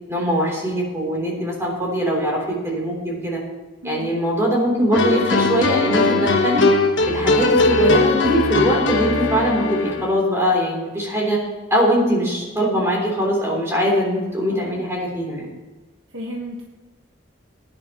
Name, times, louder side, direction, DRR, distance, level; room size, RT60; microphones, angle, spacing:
voice 1, 0.1-3.4 3.8-6.7 7.1-11.4 11.7-15.5, equal, 15° right, -3 dB, 3.5 m, -21 dB
sound 1, 4.9-10.1, left 3 dB, 75° left, 1.2 m, -19 dB
voice 2, 16.1-16.7, equal, 80° right, -1 dB, 1.5 m, -32 dB
19.0 x 11.0 x 3.1 m, 1.2 s
head